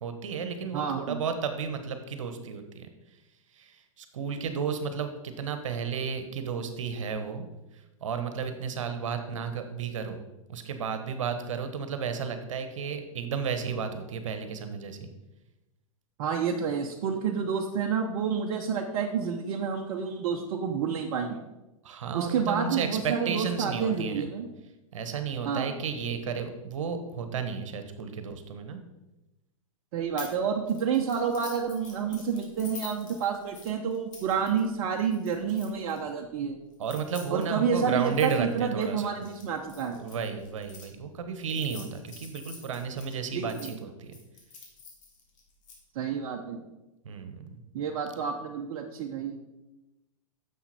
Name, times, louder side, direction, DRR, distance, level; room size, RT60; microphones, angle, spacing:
voice 1, 0.0-2.9 3.5-7.5 7.7-10.2 10.5-15.1 21.8-24.2 24.9-28.8 36.8-39.1 39.9-44.2 47.0-47.6, right 6 dB, 65° right, 8 dB, 1.3 m, -33 dB
voice 2, 0.7-1.2 16.2-21.4 22.1-24.5 25.4-25.7 29.9-36.6 37.3-40.0 43.3-43.8 45.9-46.6 47.7-49.4, right 6 dB, 45° right, 1 dB, 0.9 m, -29 dB
sound 1, 30.2-30.4 30.7-36.0 36.7-40.9 41.4-43.7 44.1-45.8, left 4 dB, 60° left, 2.8 m, -47 dB
10.0 x 7.3 x 4.3 m, 1.0 s
figure-of-eight pair, 100°, 18 cm